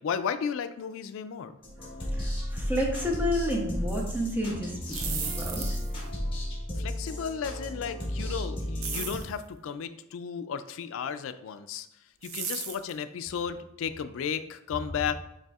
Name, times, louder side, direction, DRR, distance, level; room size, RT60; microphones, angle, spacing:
voice 1, 0.0-1.6 6.8-11.9 12.2-15.3, left 7 dB, 70° left, 11 dB, 0.3 m, -34 dB
sound 1, 1.6-9.2, equal, 25° left, 1.2 m, -33 dB
voice 2, 2.1-5.7, equal, 10° right, -1 dB, 0.7 m, -30 dB
sound 2, 4.8-6.0 8.8-9.3 12.2-12.9, right 6 dB, 85° right, 0.6 m, -35 dB
6.6 x 3.4 x 2.4 m, 0.83 s
head